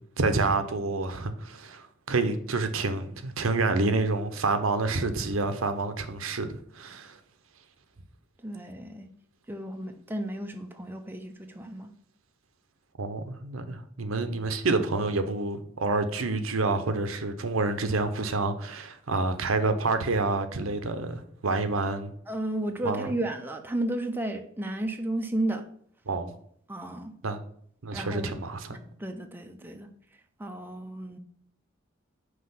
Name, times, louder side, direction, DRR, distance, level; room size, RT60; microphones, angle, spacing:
voice 1, 0.2-7.2 13.0-22.1 22.8-23.1 26.1-26.3 27.2-27.4 27.8-28.8, right 3 dB, 80° right, 0.7 m, -28 dB
voice 2, 8.4-9.1 9.5-11.9 22.3-25.7 26.7-27.1 27.9-28.4 29.0-29.9 30.4-31.2, right 1 dB, 10° right, 0.5 m, -33 dB
5.7 x 3.1 x 5.6 m
head